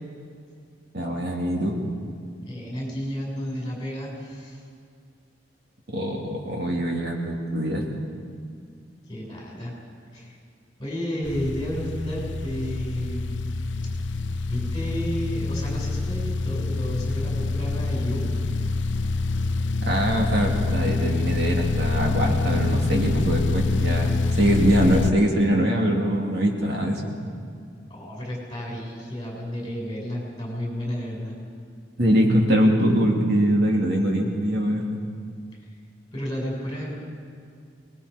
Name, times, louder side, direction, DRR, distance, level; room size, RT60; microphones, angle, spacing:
voice 1, 0.9-1.8 5.9-7.8 19.9-27.0 32.0-35.0, equal, 60° right, -1 dB, 3.0 m, -23 dB
voice 2, 2.4-4.6 9.1-9.7 10.1-10.4 10.8-13.6 14.4-18.2 27.9-31.4 36.1-37.0, equal, 25° left, -3 dB, 6.5 m, -32 dB
sound 1, 11.2-25.1, left 3 dB, 85° left, 0.6 m, -26 dB
24.5 x 20.5 x 5.3 m, 2.2 s
head